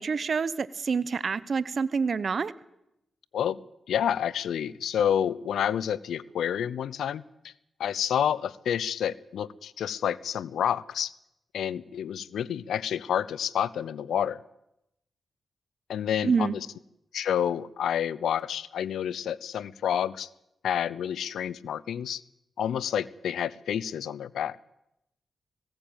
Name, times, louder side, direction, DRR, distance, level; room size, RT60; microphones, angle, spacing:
voice 1, 0.0-2.5 16.2-16.6, right 5 dB, 60° right, 16 dB, 1.0 m, -27 dB
voice 2, 3.9-7.2 7.8-11.1 11.5-14.4 15.9-16.6 17.1-20.3 20.6-22.2 22.6-24.6, left 9 dB, 85° left, 20 dB, 0.7 m, -29 dB
19.5 x 16.5 x 9.0 m, 0.84 s
cardioid pair, 50°, 0 cm